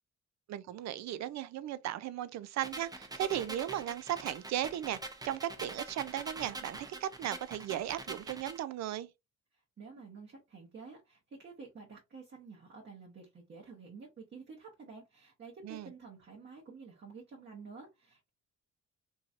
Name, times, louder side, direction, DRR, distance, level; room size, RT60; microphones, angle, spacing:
voice 1, 0.5-5.0 5.2-9.1 15.6-15.9, right 12 dB, 65° right, 0.4 m, -36 dB
sound 1, 2.6-8.6, right 2 dB, 15° right, 0.6 m, -44 dB
voice 2, 9.5-18.3, right 4 dB, 35° right, 0.9 m, -50 dB
3.0 x 2.7 x 2.4 m
cardioid pair, 90°, 30 cm